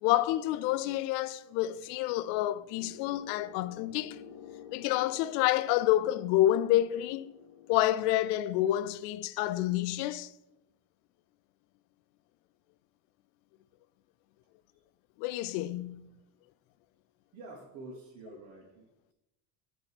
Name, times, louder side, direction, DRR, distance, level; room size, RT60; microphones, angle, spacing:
voice 1, 0.0-4.2 4.7-7.3 7.7-10.3 15.2-16.1, left 14 dB, 85° left, 0.5 m, -28 dB
sound 1, 2.5-7.9, left 9 dB, 70° left, 1.0 m, -50 dB
voice 2, 17.3-19.1, right 2 dB, 75° right, 1.5 m, -48 dB
8.9 x 3.2 x 5.9 m
cardioid pair, 130°, 46 cm